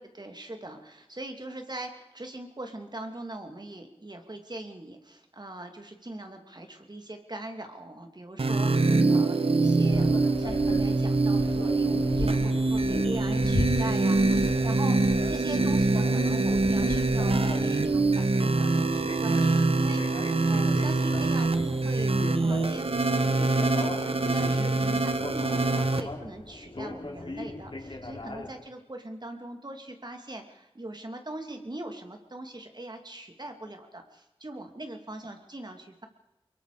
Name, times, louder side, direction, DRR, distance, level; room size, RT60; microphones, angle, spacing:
voice 1, 0.0-36.1, right 1 dB, 45° right, 5 dB, 2.9 m, -41 dB
sound 1, 8.4-26.0, right 3 dB, 75° right, 1.4 m, -24 dB
sound 2, 9.9-28.5, left 2 dB, 60° left, 3.3 m, -37 dB
24.5 x 22.5 x 5.1 m, 1.0 s
wide cardioid pair, 40°, 10 cm